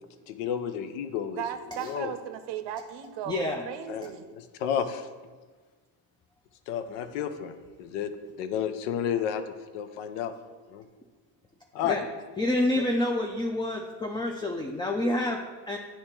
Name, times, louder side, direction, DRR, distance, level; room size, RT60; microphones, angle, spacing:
voice 1, 0.3-1.4 1.8-2.1 3.9-4.1 4.4-5.1 6.7-7.5 7.8-8.1 8.4-10.3 10.7-10.8 11.7-12.0 12.8-12.9, left 8 dB, 85° left, 10 dB, 0.6 m, -31 dB
voice 2, 1.3-4.3, right 10 dB, 65° right, 10 dB, 0.6 m, -37 dB
voice 3, 3.3-3.6 11.8-12.1 12.4-15.8, left 1 dB, 10° left, 2 dB, 0.3 m, -28 dB
8.5 x 2.9 x 4.4 m, 1.4 s
supercardioid pair, 80°, 47 cm